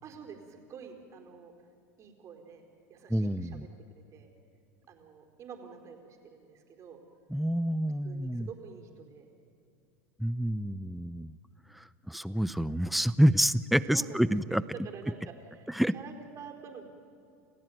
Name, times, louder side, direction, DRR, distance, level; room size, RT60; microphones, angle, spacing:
voice 1, 0.0-1.5 2.0-3.6 4.1-4.3 4.9-7.0 8.0-9.3 13.9-14.2 14.5-16.9, right 6 dB, 40° right, 3 dB, 4.4 m, -47 dB
voice 2, 3.1-3.7 7.3-8.5 10.2-11.3 11.7-14.6 15.7-15.9, equal, ahead, 16 dB, 0.6 m, -28 dB
29.5 x 15.5 x 9.3 m, 2.5 s
supercardioid pair, 110°, 8 cm